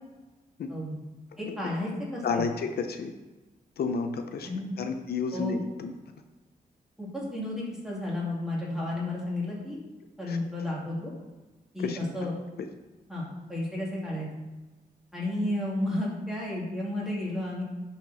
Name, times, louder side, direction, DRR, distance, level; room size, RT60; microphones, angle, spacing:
voice 1, 1.4-2.4 4.4-4.7 5.3-5.6 7.0-9.8 10.2-11.1 11.7-12.3 13.1-14.3 15.1-17.6, left 1 dB, 5° right, -5 dB, 2.4 m, -32 dB
voice 2, 2.2-3.1 3.8-4.5 4.8-5.9 10.3-10.4 11.8-12.3, left 5 dB, 80° left, 6 dB, 0.7 m, -31 dB
10.5 x 4.5 x 4.1 m, 1.1 s
wide cardioid pair, 150°, 16 cm